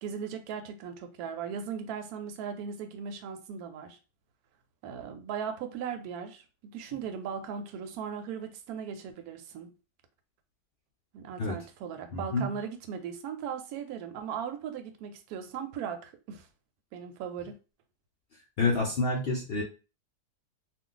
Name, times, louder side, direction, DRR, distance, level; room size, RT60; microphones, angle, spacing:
voice 1, 0.0-4.0 4.8-9.7 11.1-16.5 16.9-17.6, right 7 dB, 75° right, 1.1 m, -38 dB
voice 2, 12.1-12.5 18.6-19.6, left 3 dB, 65° left, 0.6 m, -28 dB
2.5 x 2.3 x 3.8 m
omnidirectional pair, 1.7 m